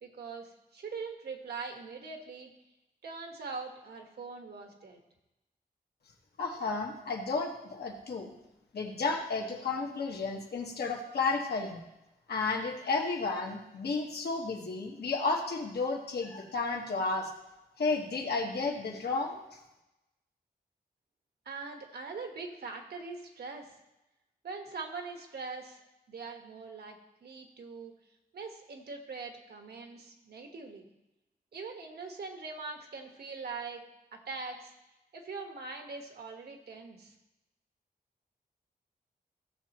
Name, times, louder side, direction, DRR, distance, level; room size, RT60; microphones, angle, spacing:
voice 1, 0.0-2.5 3.0-5.0 21.4-23.7 24.4-25.8 26.1-27.9 28.3-30.9 31.5-33.8 34.1-34.7 35.1-37.1, right 4 dB, 80° right, 3 dB, 1.5 m, -42 dB
voice 2, 6.4-8.3 8.7-11.8 12.3-17.3 17.8-19.4, left 3 dB, 80° left, 0 dB, 1.6 m, -32 dB
16.0 x 7.4 x 3.0 m, 0.95 s
wide cardioid pair, 175°, 16 cm